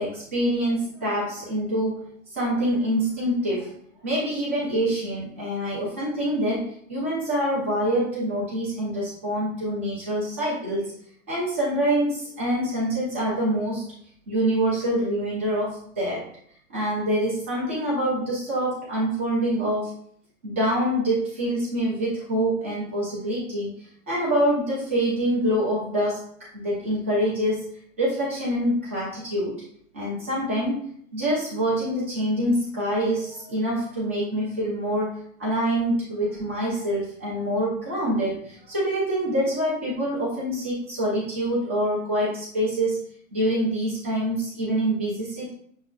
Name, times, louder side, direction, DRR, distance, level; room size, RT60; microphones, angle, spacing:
voice 1, 0.0-3.7 4.0-10.9 11.3-13.8 14.3-16.3 16.7-19.9 20.4-27.7 28.0-29.6 29.9-43.0 43.3-45.5, right 1 dB, 10° right, -6 dB, 0.3 m, -25 dB
6.1 x 2.2 x 2.3 m, 0.63 s
hypercardioid pair, 135°, 42 cm